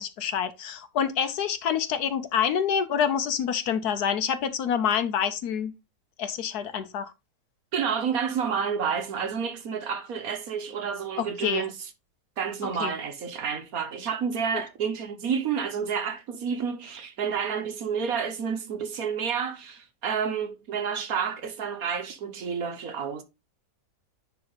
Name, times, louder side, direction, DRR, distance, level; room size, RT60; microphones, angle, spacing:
voice 1, 0.0-5.7 6.2-7.1 11.2-11.7 12.6-12.9, left 8 dB, 70° left, 1.1 m, -27 dB
voice 2, 7.7-11.7 12.4-23.2, right 7 dB, 60° right, 1.2 m, -30 dB
9.9 x 3.5 x 3.8 m
omnidirectional pair, 1.9 m